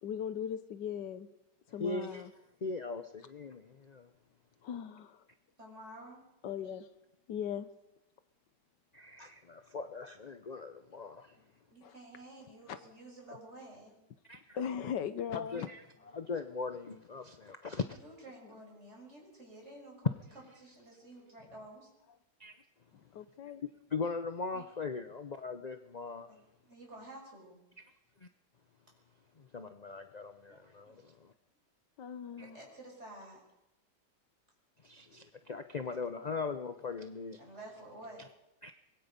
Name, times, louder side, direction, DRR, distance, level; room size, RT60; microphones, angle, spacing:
voice 1, 0.0-1.3 1.7-2.3 4.6-5.2 6.4-6.9 7.3-7.7 11.8-11.9 12.7-12.8 14.5-15.7 22.9-23.6 32.0-32.6, left 8 dB, 75° left, 12 dB, 1.6 m, -38 dB
voice 2, 1.8-2.3 2.6-4.1 8.9-11.3 14.3-14.4 15.3-15.8 16.1-18.0 22.4-22.5 23.9-26.3 28.2-28.3 29.4-31.3 32.4-32.5 34.8-37.4 38.6-38.7, left 4 dB, 45° left, 8 dB, 0.5 m, -40 dB
voice 3, 5.6-6.2 11.7-14.0 17.9-20.1 20.6-21.9 24.5-24.6 26.3-26.4 26.6-27.6 30.5-30.7 32.4-33.4 37.4-38.2, right 1 dB, 40° right, -1 dB, 6.8 m, -51 dB
23.5 x 21.0 x 5.3 m, 0.90 s
omnidirectional pair, 1.9 m